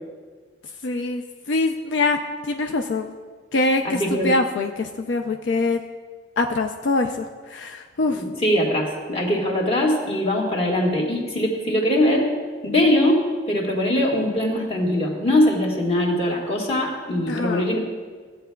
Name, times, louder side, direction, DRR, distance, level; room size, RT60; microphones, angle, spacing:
voice 1, 0.8-1.2 1.5-2.2 2.5-3.1 3.5-5.8 6.4-8.2 17.3-17.6, left 2 dB, 75° left, 5 dB, 0.4 m, -23 dB
voice 2, 3.8-4.4 8.1-12.3 12.6-17.8, left 1 dB, 30° left, -2 dB, 1.5 m, -21 dB
15.5 x 8.3 x 2.3 m, 1.5 s
head